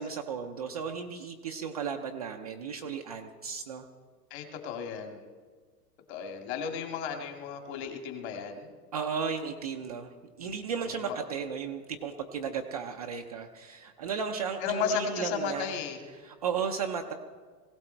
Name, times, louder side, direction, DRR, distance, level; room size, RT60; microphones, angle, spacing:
voice 1, 0.0-3.9 8.9-15.8 16.2-17.1, right 6 dB, 25° right, 3 dB, 0.4 m, -35 dB
voice 2, 4.3-5.3 6.1-8.7 11.0-11.2 14.6-16.0, left 6 dB, 40° left, 4 dB, 2.2 m, -34 dB
19.5 x 17.0 x 4.4 m, 1.5 s
supercardioid pair, 160°, 49 cm